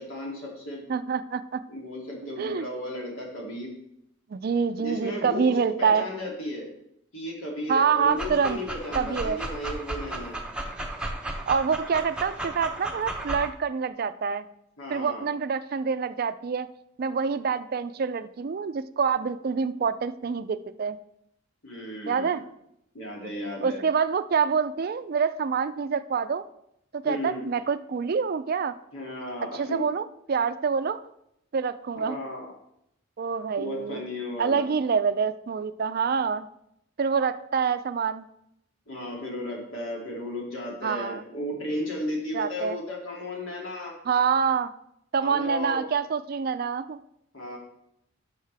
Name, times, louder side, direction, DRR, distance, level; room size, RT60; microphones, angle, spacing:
voice 1, 0.0-0.8 1.7-3.7 4.8-6.7 7.1-10.4 14.8-15.3 21.6-22.4 22.9-23.8 27.0-27.4 28.9-29.9 32.1-32.5 33.6-34.7 38.9-43.9 45.2-45.8 47.3-47.6, left 1 dB, 85° left, -2 dB, 2.7 m, -34 dB
voice 2, 0.9-1.6 2.4-2.7 4.3-6.0 7.7-8.6 8.9-9.4 11.5-14.5 14.9-16.7 17.0-21.0 22.1-22.4 23.6-26.4 26.9-28.7 29.5-31.0 31.5-32.2 33.2-34.0 34.4-36.5 37.0-38.3 40.8-41.2 42.3-42.8 44.1-44.7 45.1-47.0, right 6 dB, 50° right, 13 dB, 0.4 m, -26 dB
Dog, 8.0-13.5, right 1 dB, 5° right, 0.7 m, -34 dB
11.5 x 6.4 x 3.4 m, 0.78 s
head